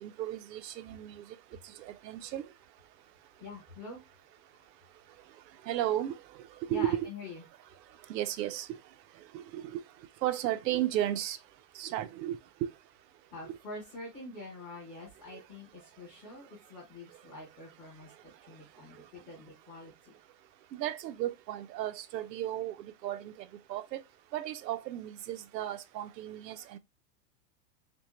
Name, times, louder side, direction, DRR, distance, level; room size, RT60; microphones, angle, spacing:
voice 1, 0.0-1.2 1.8-2.4 5.7-6.1 6.7-7.1 8.1-8.7 9.3-9.8 10.2-11.4 11.8-12.7 20.7-22.8 23.0-23.3 23.7-24.0 24.3-26.8, right 12 dB, 75° right, 0.7 m, -34 dB
voice 2, 3.4-4.0 6.7-7.4 13.3-20.1, left 2 dB, 10° left, 0.4 m, -46 dB
3.6 x 2.9 x 3.0 m
supercardioid pair, 180°, 50 cm